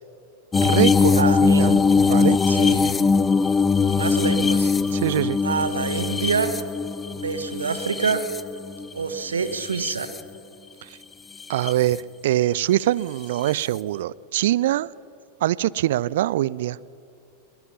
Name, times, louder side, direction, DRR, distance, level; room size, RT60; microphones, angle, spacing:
sound 1, 0.5-8.9 9.4-10.2 11.4-11.7 13.5-13.6, left 4 dB, 15° left, 0.7 m, -21 dB
voice 1, 0.5-1.7 2.0-2.4 2.8-2.9 4.9-5.4 11.5-14.9 15.4-16.8, right 14 dB, 55° right, 22 dB, 0.4 m, -23 dB
voice 2, 1.2-1.8 2.5-2.9 3.8-4.7 5.4-6.6 7.1-8.2 8.9-10.1, right 5 dB, 70° right, 11 dB, 1.3 m, -26 dB
22.0 x 22.0 x 5.8 m, 2.7 s
figure-of-eight pair, 90°, 0 cm